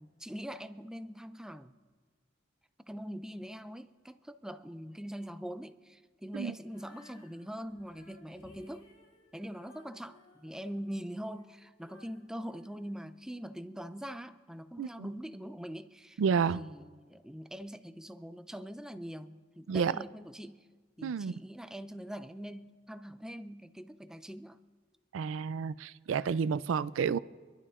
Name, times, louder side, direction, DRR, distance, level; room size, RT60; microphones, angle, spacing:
voice 1, 0.0-1.8 2.8-8.9 9.3-16.2 16.5-20.7 21.0-24.6, equal, 5° right, 0.4 m, -43 dB
Female singing, 6.6-13.7, left 2 dB, 80° left, 3.1 m, -61 dB
voice 2, 14.8-15.1 16.2-16.6 19.7-20.0 21.0-21.3 25.1-27.2, right 6 dB, 85° right, 0.3 m, -30 dB
26.0 x 12.0 x 2.5 m
head